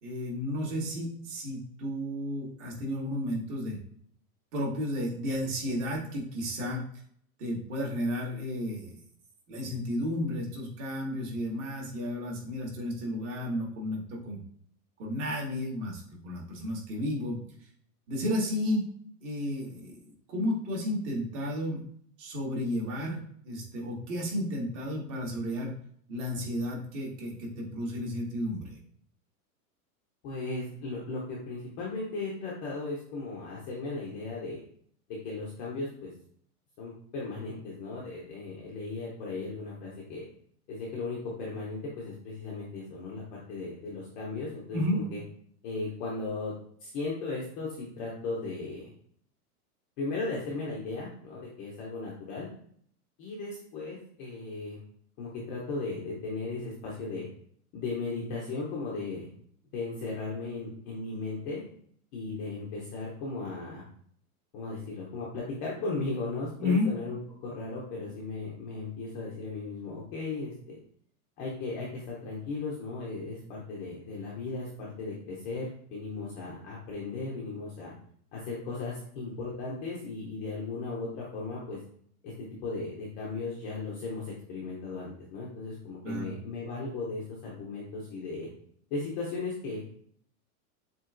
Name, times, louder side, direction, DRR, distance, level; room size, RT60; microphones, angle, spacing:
voice 1, 0.0-3.8 4.5-6.8 7.4-9.0 9.5-14.4 15.0-17.7 18.1-18.8 19.2-21.9 22.2-25.7 26.1-28.8 44.7-45.0 66.6-66.9 86.0-86.3, left 1 dB, 50° right, -2 dB, 1.8 m, -32 dB
voice 2, 30.2-34.6 35.1-36.1 36.8-40.3 40.7-45.2 45.6-46.5 46.8-48.9 50.0-52.5 53.2-54.8 55.2-57.3 57.7-59.3 59.7-61.6 62.1-63.8 64.5-70.8 71.4-77.9 78.3-81.8 82.2-82.3 82.6-88.5 88.9-89.8, left 3 dB, 20° left, -4 dB, 0.4 m, -36 dB
7.2 x 2.8 x 2.5 m, 0.63 s
supercardioid pair, 155°, 45 cm